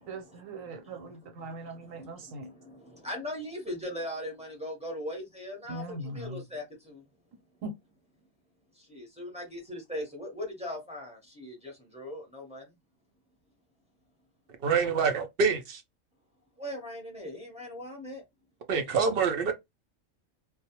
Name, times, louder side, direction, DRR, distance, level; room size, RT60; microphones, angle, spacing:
voice 1, 0.1-2.5 5.7-6.4 7.6-7.7, right 2 dB, 80° right, 1.2 m, -40 dB
voice 2, 3.0-5.8 6.2-6.6 9.0-11.1 11.4-11.5 11.9-12.6 16.6-18.2, left 1 dB, 5° right, 0.8 m, -38 dB
voice 3, 14.6-15.8 18.7-19.5, right 5 dB, 65° right, 0.6 m, -26 dB
2.3 x 2.1 x 2.9 m
omnidirectional pair, 1.4 m